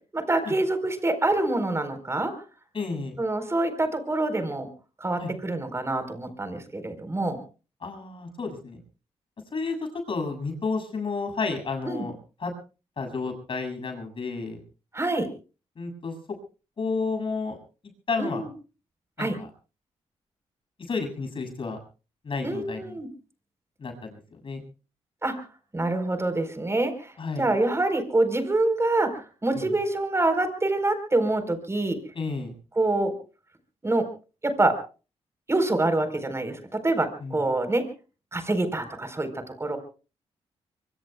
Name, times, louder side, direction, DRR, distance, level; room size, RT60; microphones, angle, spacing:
voice 1, 0.1-2.3 3.2-4.7 5.0-7.4 11.8-12.0 14.9-15.3 18.2-18.5 19.2-19.4 22.4-23.1 25.2-25.4 25.7-27.1 27.4-32.0 32.8-33.1 33.8-34.0 34.4-34.8 35.5-37.9 38.3-39.3 39.6-39.8, right 2 dB, 25° right, 8 dB, 4.4 m, -26 dB
voice 2, 2.7-3.2 5.2-5.3 7.8-8.8 9.5-9.8 10.1-12.1 12.4-12.5 13.0-14.6 15.8-16.1 16.8-17.6 18.1-18.5 19.2-19.5 20.9-21.8 22.2-23.0 23.8-24.6 27.2-27.5 29.5-29.7 32.1-32.5 37.2-37.4, left 4 dB, 50° left, 4 dB, 7.5 m, -31 dB
24.5 x 24.0 x 2.4 m, 0.35 s
cardioid pair, 70°, 12 cm